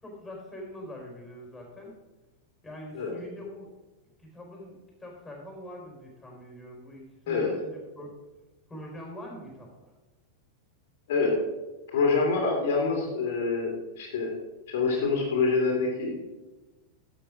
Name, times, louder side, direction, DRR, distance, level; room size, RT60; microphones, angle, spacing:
voice 1, 0.0-1.9 2.6-3.7 4.3-8.1 8.7-9.7, equal, 10° left, -1 dB, 4.4 m, -43 dB
voice 2, 11.1-11.4 11.9-14.3 14.7-16.2, left 4 dB, 55° left, 0 dB, 2.5 m, -26 dB
12.5 x 7.6 x 5.0 m, 1.1 s
figure-of-eight pair, 90°, 0 cm